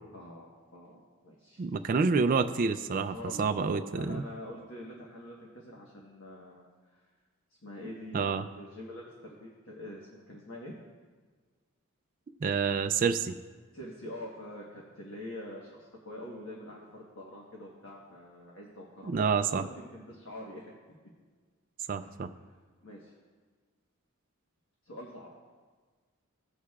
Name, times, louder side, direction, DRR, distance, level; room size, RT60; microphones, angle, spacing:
voice 1, 0.1-1.6 3.0-7.0 7.6-10.7 13.7-20.7 22.0-22.1 22.8-23.1 24.8-25.3, left 1 dB, 60° left, -3 dB, 1.3 m, -45 dB
voice 2, 1.6-4.2 8.1-8.4 12.4-13.3 19.1-19.6 21.9-22.3, right 5 dB, 40° right, 7 dB, 0.3 m, -28 dB
17.0 x 6.5 x 2.4 m, 1.5 s
head